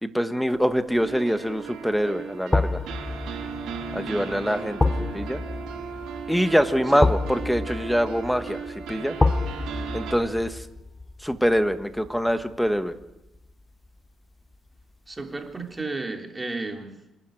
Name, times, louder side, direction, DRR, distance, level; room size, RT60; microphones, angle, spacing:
voice 1, 0.0-2.8 3.9-5.4 6.3-9.2 9.9-10.6 11.2-12.9, equal, ahead, 10 dB, 1.4 m, -24 dB
sound 1, 0.7-1.1 2.5-13.5 13.8-14.0, left 2 dB, 15° left, 0.8 m, -29 dB
sound 2, 1.0-10.1, right 6 dB, 85° right, 6.7 m, -36 dB
voice 2, 15.1-17.0, right 3 dB, 20° right, 3 dB, 3.4 m, -33 dB
26.5 x 12.0 x 9.2 m, 0.96 s
cardioid pair, 90°, 0 cm